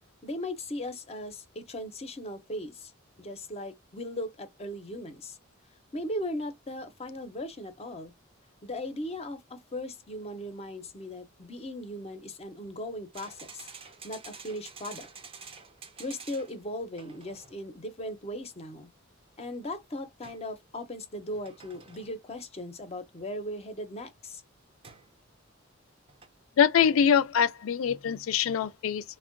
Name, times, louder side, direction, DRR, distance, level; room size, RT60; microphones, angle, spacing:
voice 1, 0.2-2.9 3.2-5.4 5.9-8.1 8.6-13.7 14.0-15.1 16.0-18.9 19.4-24.4, left 1 dB, 30° left, 0.5 m, -38 dB
sound 1, 13.1-16.6 17.0-17.6 20.2-20.5 21.3-22.2 24.8-25.1 26.1-26.3, right 5 dB, 30° right, 0.5 m, -48 dB
voice 2, 26.6-29.2, left 8 dB, 85° left, 0.3 m, -24 dB
3.5 x 2.1 x 2.5 m
head